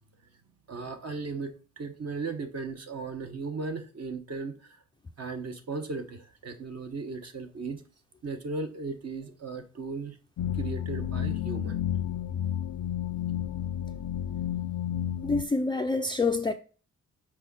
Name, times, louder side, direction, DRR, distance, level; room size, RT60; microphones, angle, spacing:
voice 1, 0.7-4.8 5.2-7.8 8.2-10.2 10.5-11.8, right 4 dB, 50° right, 1.1 m, -36 dB
sound 1, 10.4-15.4, left 10 dB, 75° left, 0.5 m, -31 dB
voice 2, 15.2-16.5, left 3 dB, 15° left, 0.4 m, -27 dB
6.2 x 4.5 x 6.1 m
wide cardioid pair, 150°, 32 cm